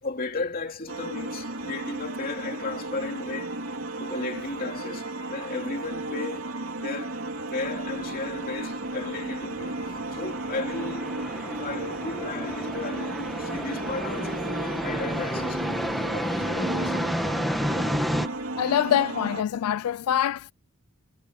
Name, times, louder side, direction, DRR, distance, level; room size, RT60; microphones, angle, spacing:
voice 1, 0.0-3.6 4.0-7.2 7.5-11.2 11.5-15.8 16.1-17.0, left 3 dB, 40° left, 3.0 m, -35 dB
sound 1, 0.9-19.4, right 2 dB, 65° right, 3.3 m, -34 dB
sound 2, 7.7-18.3, equal, ahead, 1.9 m, -32 dB
voice 2, 18.6-20.5, left 10 dB, 85° left, 0.3 m, -24 dB
head